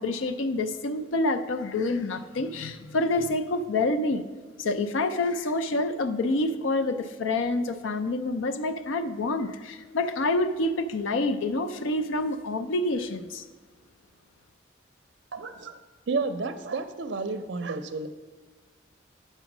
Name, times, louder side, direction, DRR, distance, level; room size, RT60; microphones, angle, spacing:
voice 1, 0.0-4.3 4.6-13.4, left 2 dB, 80° left, 9 dB, 0.5 m, -27 dB
voice 2, 15.3-15.8 16.1-18.1, right 3 dB, 60° right, 9 dB, 0.5 m, -31 dB
8.0 x 5.5 x 6.0 m, 1.4 s
head